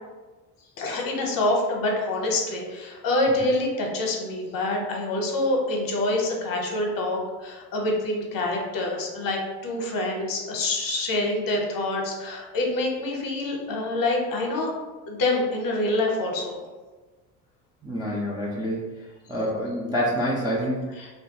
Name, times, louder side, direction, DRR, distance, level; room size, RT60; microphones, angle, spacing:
voice 1, 0.8-14.7 15.1-16.6 21.0-21.1, left 2 dB, 45° left, 0 dB, 0.7 m, -26 dB
voice 2, 17.8-18.8 19.3-20.9, equal, 10° right, -7 dB, 0.3 m, -27 dB
2.4 x 2.2 x 2.8 m, 1.3 s
hypercardioid pair, 65°, 48 cm